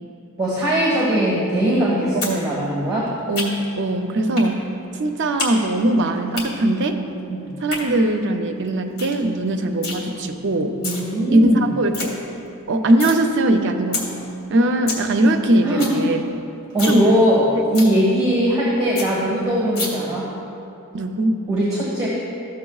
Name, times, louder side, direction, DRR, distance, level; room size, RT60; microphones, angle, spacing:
voice 1, 0.4-3.1 7.3-7.5 10.8-11.6 15.6-16.0 16.7-20.3 21.5-22.1, equal, 15° right, -6 dB, 1.3 m, -20 dB
sound 1, 2.2-2.4 2.7-3.8 4.4-4.5 4.8-5.5 5.8-6.4 7.5-7.8 8.3-8.4 8.7-8.8 9.0-9.2 9.5-10.0 10.6-11.0 11.4-11.5 11.7-12.1 12.4-13.2 13.5-13.6 13.9-14.0 14.4-14.5 14.7-15.0 15.4-15.5 15.7-16.0 16.3-16.4 16.7-17.0 17.3-17.4 17.7-17.9 18.3-18.4 18.6-18.7 18.9-19.1 19.7-19.9, left 3 dB, 70° left, 1.6 m, -28 dB
voice 2, 3.3-4.6 5.0-7.0 7.6-10.8 11.3-12.1 12.7-14.1 14.5-16.2 16.9-17.1 20.9-21.4, right 1 dB, 55° right, 5 dB, 0.5 m, -20 dB
13.5 x 6.6 x 2.3 m, 2.7 s
head